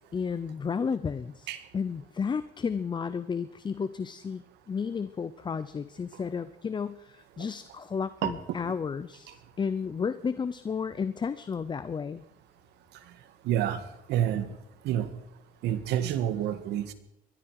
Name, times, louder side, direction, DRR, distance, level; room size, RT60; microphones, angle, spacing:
voice 1, 0.1-1.5 1.7-12.2, left 6 dB, 25° left, 14 dB, 0.7 m, -32 dB
voice 2, 13.4-13.8 14.1-14.6 14.8-15.1 15.6-16.9, right 10 dB, 85° right, 11 dB, 1.8 m, -28 dB
21.0 x 13.5 x 4.9 m, 0.83 s
cardioid pair, 110°, 17 cm